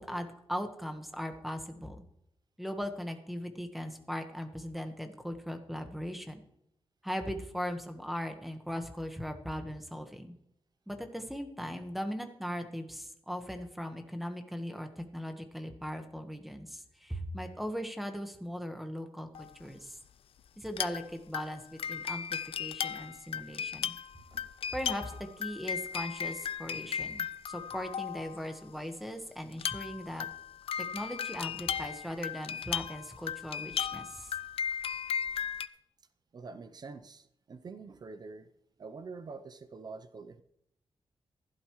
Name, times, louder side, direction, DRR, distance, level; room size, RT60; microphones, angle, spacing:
voice 1, 0.0-2.0 2.6-6.4 7.0-10.3 10.9-20.0 20.6-21.6 21.9-23.9 24.7-25.1 25.4-30.3 30.8-34.3, equal, ahead, 6 dB, 1.3 m, -39 dB
sound 1, 19.3-19.5 20.7-21.1 21.3-28.6 29.5-35.7, left 8 dB, 80° left, 0.4 m, -36 dB
voice 2, 36.3-38.5 38.8-40.4, right 4 dB, 45° right, 12 dB, 0.7 m, -46 dB
15.0 x 12.0 x 3.1 m, 0.77 s
wide cardioid pair, 135°, 9 cm